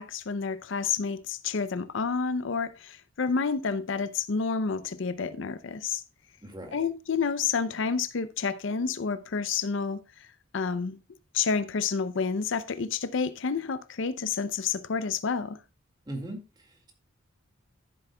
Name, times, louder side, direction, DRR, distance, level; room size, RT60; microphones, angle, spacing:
voice 1, 0.0-6.0 6.7-11.0 11.3-15.6, left 5 dB, 65° left, 0.5 m, -29 dB
voice 2, 6.4-6.8 16.1-16.9, right 1 dB, 20° right, 1.9 m, -39 dB
13.5 x 7.8 x 2.2 m
head